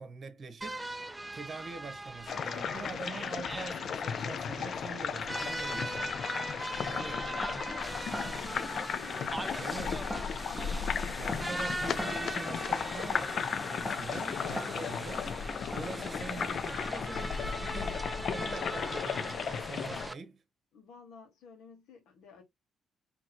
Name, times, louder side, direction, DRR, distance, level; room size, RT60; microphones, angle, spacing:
voice 1, 0.0-6.1 6.8-7.2 9.6-10.0 11.2-15.3 15.7-20.4, right 4 dB, 45° right, 1.0 m, -44 dB
sound 1, 0.6-20.1, right 1 dB, 10° right, 0.4 m, -41 dB
sound 2, 2.3-20.1, left 7 dB, 60° left, 0.4 m, -35 dB
voice 2, 6.8-10.3 20.7-22.4, left 5 dB, 85° left, 1.3 m, -54 dB
sound 3, 6.9-17.0, left 1 dB, 10° left, 0.8 m, -44 dB
4.1 x 3.0 x 2.8 m
cardioid pair, 90°, 0 cm